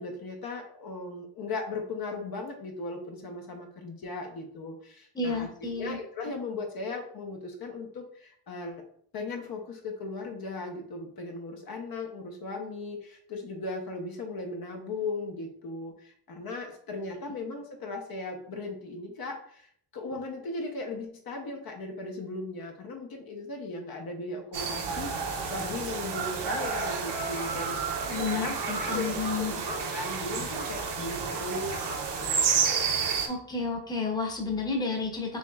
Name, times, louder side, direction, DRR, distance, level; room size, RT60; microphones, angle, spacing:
voice 1, 0.0-8.8 9.1-28.0 28.3-32.6, left 3 dB, 55° left, 2 dB, 0.9 m, -37 dB
voice 2, 5.1-6.0 28.1-29.5 33.3-35.4, left 4 dB, 10° left, 1 dB, 0.8 m, -31 dB
sound 1, 24.5-33.3, right 5 dB, 70° right, 0.9 m, -30 dB
6.0 x 3.0 x 2.3 m, 0.62 s
cardioid pair, 130°, 44 cm